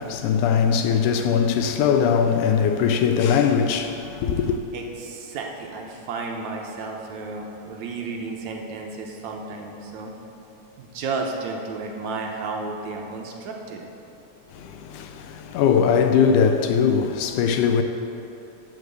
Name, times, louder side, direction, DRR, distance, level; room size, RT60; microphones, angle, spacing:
voice 1, 0.0-4.6 14.5-17.8, left 7 dB, 85° left, 2.1 m, -21 dB
voice 2, 4.7-10.1 10.8-13.8, right 4 dB, 70° right, 2.0 m, -32 dB
11.5 x 4.7 x 8.1 m
omnidirectional pair, 3.6 m